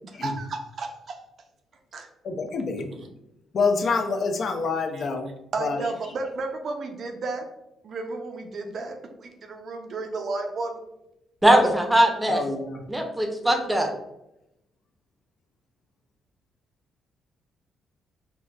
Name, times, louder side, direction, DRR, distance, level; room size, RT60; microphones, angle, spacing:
voice 1, 0.2-1.2 1.9-2.1 5.5-7.4 7.8-10.8, right 3 dB, 55° right, 4 dB, 0.5 m, -32 dB
voice 2, 2.2-2.9 3.5-5.3 5.6-6.1 12.3-12.8, left 4 dB, 55° left, 4 dB, 0.4 m, -27 dB
voice 3, 11.4-12.4 12.9-13.9, right 1 dB, 10° right, 3 dB, 0.6 m, -20 dB
3.8 x 2.2 x 2.2 m, 0.87 s
cardioid pair, 90°, 0 cm